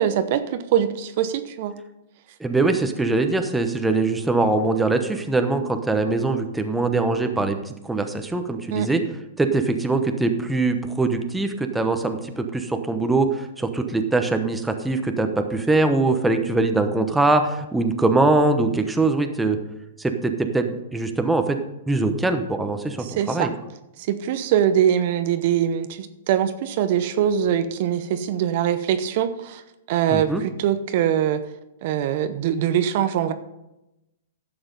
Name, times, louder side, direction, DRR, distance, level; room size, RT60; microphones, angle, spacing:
voice 1, 0.0-1.8 8.7-8.9 23.0-23.5 24.1-29.6 29.9-31.4 31.8-33.3, right 10 dB, 50° right, 11 dB, 0.7 m, -22 dB
voice 2, 2.4-9.0 9.4-19.6 20.0-21.6 21.9-23.5 30.1-30.4, right 3 dB, 5° right, 6 dB, 0.9 m, -22 dB
11.5 x 7.0 x 5.3 m, 0.93 s
hypercardioid pair, 140°, 0 cm